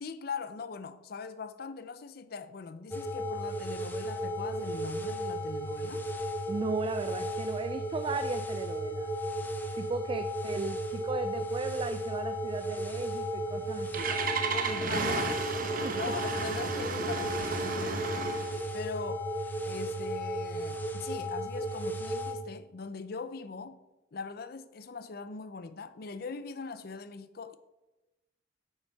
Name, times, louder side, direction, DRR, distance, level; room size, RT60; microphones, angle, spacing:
voice 1, 0.0-6.0 14.4-18.3 18.7-19.3 19.6-23.8 24.1-27.6, left 5 dB, 55° left, 0.5 m, -41 dB
sound 1, 2.9-22.4, right 1 dB, 10° left, 0.8 m, -35 dB
voice 2, 6.5-9.1 9.8-14.1 15.8-16.0, right 3 dB, 30° right, 0.3 m, -36 dB
Engine starting, 13.4-18.6, right 4 dB, 50° right, 1.0 m, -33 dB
9.9 x 6.7 x 4.6 m
head